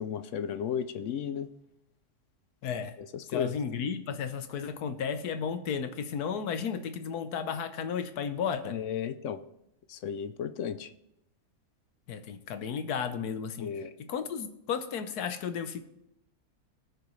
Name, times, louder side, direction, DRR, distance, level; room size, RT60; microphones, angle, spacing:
voice 1, 0.0-1.5 3.0-3.5 8.7-9.4 9.9-10.9 13.6-13.9, left 8 dB, 65° left, 12 dB, 0.8 m, -34 dB
voice 2, 2.6-3.0 3.3-8.8 12.1-13.7 14.0-15.8, left 7 dB, 90° left, 10 dB, 1.4 m, -33 dB
20.0 x 6.7 x 3.2 m, 0.84 s
omnidirectional pair, 1.6 m